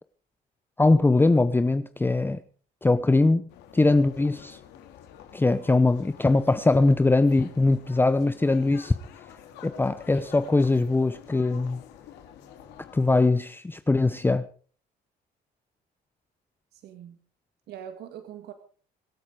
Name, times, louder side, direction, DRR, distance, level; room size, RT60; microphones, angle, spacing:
voice 1, 0.8-2.4 2.8-3.4 3.7-4.6 5.3-8.9 9.6-11.8 12.9-14.4, left 2 dB, 10° left, 0.8 m, -21 dB
sound 1, 3.5-13.3, left 9 dB, 90° left, 2.7 m, -48 dB
voice 2, 16.7-17.2 17.7-18.5, right 9 dB, 75° right, 1.9 m, -42 dB
24.5 x 8.5 x 4.9 m
cardioid pair, 110°, 17 cm